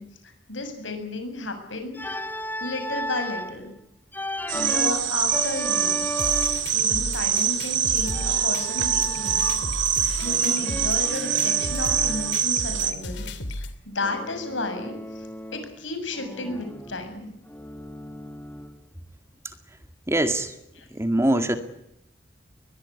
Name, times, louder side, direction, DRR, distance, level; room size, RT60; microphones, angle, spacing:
voice 1, 0.0-2.2 2.6-3.7 4.5-6.0 6.7-9.4 10.2-13.3 13.6-15.3 15.5-17.3 20.8-20.9, left 2 dB, 90° left, 7 dB, 7.0 m, -33 dB
Organ, 1.9-3.6 4.1-6.8 8.0-9.8 10.1-12.4 14.0-15.8 16.1-18.8, equal, 10° left, 1.0 m, -35 dB
sound 1, 4.5-12.9, right 8 dB, 80° right, 2.9 m, -24 dB
sound 2, 6.2-13.7, left 1 dB, 65° left, 2.8 m, -34 dB
voice 2, 19.4-19.8 20.1-20.6 20.9-21.6, right 1 dB, 15° right, 7 dB, 2.1 m, -24 dB
22.0 x 21.5 x 9.7 m, 0.79 s
head